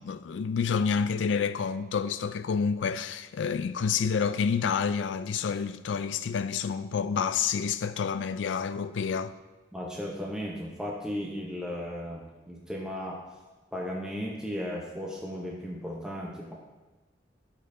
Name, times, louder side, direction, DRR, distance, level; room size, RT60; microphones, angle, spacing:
voice 1, 0.0-9.3, left 6 dB, 85° left, 0.4 m, -28 dB
voice 2, 9.7-13.2 13.7-16.5, equal, 5° right, 0.7 m, -35 dB
12.5 x 5.2 x 2.6 m
head